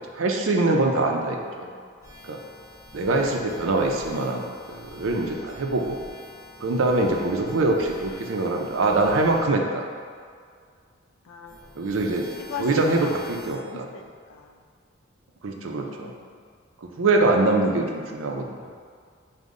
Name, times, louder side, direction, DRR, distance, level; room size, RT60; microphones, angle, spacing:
voice 1, 0.0-1.7 2.2-2.4 2.9-6.0 6.6-9.8 11.8-12.3 12.6-13.8 15.4-16.1 16.8-18.7, right 2 dB, 75° right, 2 dB, 0.5 m, -24 dB
voice 2, 1.2-2.2 5.8-5.9 7.1-7.3 11.2-11.9 12.5-13.2 13.5-14.6 15.6-16.6, left 5 dB, 85° left, 4 dB, 0.4 m, -41 dB
sound 1, 2.0-9.5 11.5-13.6, left 1 dB, 20° left, 1.2 m, -45 dB
5.3 x 2.2 x 3.7 m, 2.1 s
head